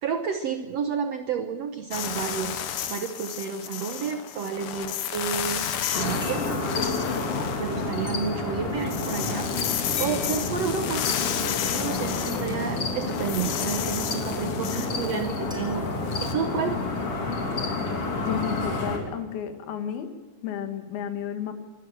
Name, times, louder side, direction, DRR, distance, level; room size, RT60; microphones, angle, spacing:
voice 1, 0.0-5.6 5.9-6.5 7.6-11.1 11.7-15.8 16.2-16.8, right 6 dB, 75° right, 7 dB, 1.5 m, -31 dB
sound 1, 1.9-8.3 8.7-16.3, left 9 dB, 70° left, 2.9 m, -32 dB
sound 2, 5.9-19.0, left 3 dB, 40° left, 3.7 m, -29 dB
sound 3, 6.2-6.6 8.1-8.2 10.0-10.3 11.8-12.0 13.6-13.7 15.5-16.6, left 2 dB, ahead, 5.7 m, -44 dB
voice 2, 18.3-21.5, left 9 dB, 85° left, 8 dB, 3.7 m, -32 dB
24.0 x 12.5 x 9.0 m, 1.3 s
omnidirectional pair, 4.3 m